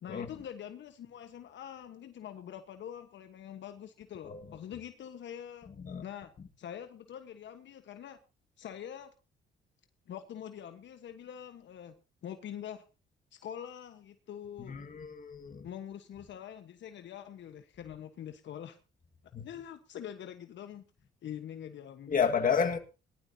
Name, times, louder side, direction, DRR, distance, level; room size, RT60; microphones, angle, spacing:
voice 1, 0.0-5.7 6.0-6.3 6.6-8.2 8.6-9.1 10.1-11.9 12.2-12.8 13.3-14.8 15.6-18.8 19.4-20.8 21.2-22.3, left 9 dB, 65° left, 1.3 m, -44 dB
voice 2, 14.7-15.7 19.3-19.5 22.1-22.8, left 6 dB, 45° left, 1.9 m, -31 dB
19.5 x 12.5 x 2.8 m
cardioid pair, 90°, 20 cm